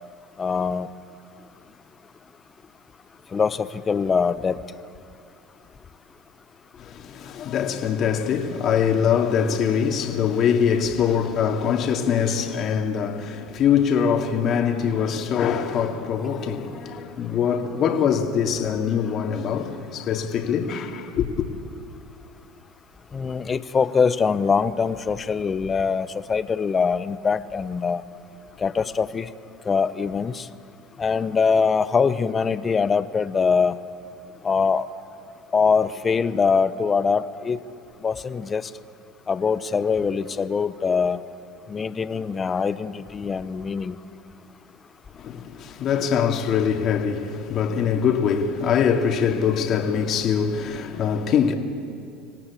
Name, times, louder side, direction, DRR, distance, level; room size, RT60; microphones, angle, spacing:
voice 1, 0.4-0.9 3.3-4.6 9.5-9.6 23.1-28.0 28.6-29.3 29.7-30.5 31.0-33.8 34.4-34.9 35.5-37.6 38.0-38.7 39.3-41.2 41.7-44.0, left 5 dB, 25° left, 1.0 m, -23 dB
voice 2, 6.8-21.5 45.2-51.5, left 7 dB, 45° left, 2.3 m, -23 dB
26.5 x 17.5 x 8.5 m
supercardioid pair, 100°, 0 cm